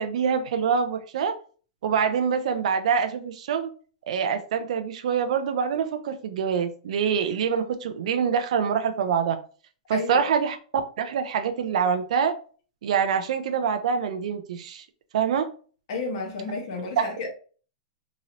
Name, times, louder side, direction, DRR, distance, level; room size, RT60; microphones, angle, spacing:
voice 1, 0.0-1.3 1.8-3.7 4.1-9.4 9.9-10.6 11.0-12.3 12.8-14.8 15.1-15.5 17.0-17.1, right 7 dB, 65° right, 0.4 m, -25 dB
voice 2, 9.9-10.2 15.9-17.3, left 3 dB, 45° left, 0.9 m, -31 dB
2.9 x 2.8 x 2.5 m
supercardioid pair, 170°, 4 cm